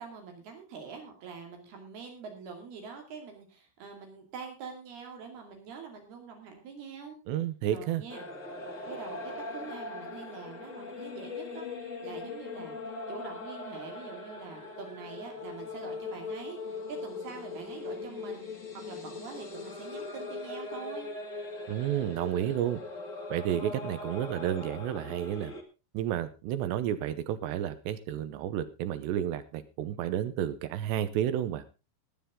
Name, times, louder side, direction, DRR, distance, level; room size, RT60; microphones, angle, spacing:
voice 1, 0.0-7.2 7.7-8.3 8.9-18.5 18.7-21.1 23.5-23.8, right 5 dB, 65° right, 3 dB, 4.2 m, -45 dB
voice 2, 7.3-8.0 21.7-22.8 23.3-25.5 25.9-31.6, right 11 dB, 80° right, 13 dB, 3.0 m, -31 dB
sound 1, 8.1-25.6, left 3 dB, 45° left, 1.0 m, -40 dB
19.5 x 9.3 x 3.7 m, 0.29 s
omnidirectional pair, 5.0 m